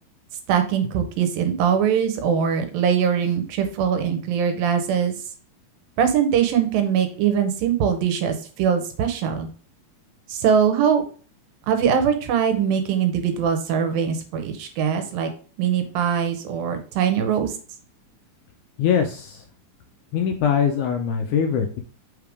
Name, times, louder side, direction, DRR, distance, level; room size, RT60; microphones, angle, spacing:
voice 1, 0.5-5.2 6.0-9.5 10.3-11.0 11.7-15.3 15.6-17.5, right 8 dB, 85° right, 7 dB, 2.6 m, -22 dB
voice 2, 18.8-19.4 20.1-21.8, left 7 dB, 80° left, 4 dB, 1.8 m, -22 dB
5.6 x 3.5 x 4.8 m, 0.41 s
omnidirectional pair, 4.0 m